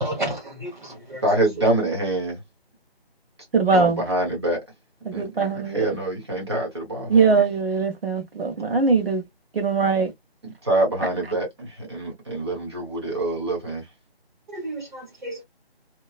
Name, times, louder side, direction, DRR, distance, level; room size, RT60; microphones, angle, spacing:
voice 1, 0.0-1.2 14.5-15.4, right 1 dB, 50° right, 0.9 m, -31 dB
voice 2, 1.2-2.4 3.7-4.6 5.1-5.2 5.5-7.2 10.4-13.8, right 2 dB, 25° right, 1.1 m, -25 dB
voice 3, 3.5-4.0 5.0-5.9 7.1-9.2 9.5-10.1, right 4 dB, 65° right, 1.4 m, -21 dB
2.9 x 2.3 x 2.3 m
figure-of-eight pair, 175°, 32 cm